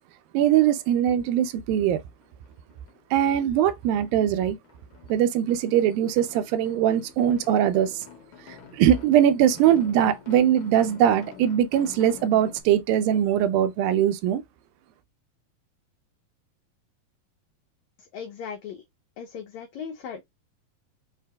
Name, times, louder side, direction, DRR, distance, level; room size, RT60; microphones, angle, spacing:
voice 1, 0.3-2.0 3.1-4.6 5.1-8.0 8.5-14.4, right 10 dB, 85° right, 2.4 m, -21 dB
sound 1, 1.4-1.5 1.8-3.0 3.3-12.6, left 7 dB, 65° left, 2.2 m, -48 dB
voice 2, 18.0-18.8 19.2-20.2, left 7 dB, 85° left, 1.6 m, -37 dB
5.7 x 2.7 x 3.4 m
omnidirectional pair, 4.1 m